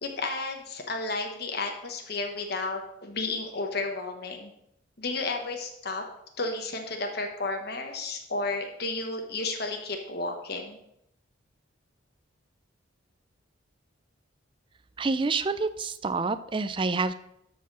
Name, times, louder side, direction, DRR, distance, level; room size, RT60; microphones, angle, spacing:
voice 1, 0.0-4.5 5.0-6.0 6.4-10.8, left 3 dB, 50° left, 3 dB, 1.2 m, -32 dB
voice 2, 15.0-17.1, right 3 dB, 25° right, 12 dB, 0.4 m, -28 dB
13.0 x 4.7 x 6.1 m, 0.80 s
head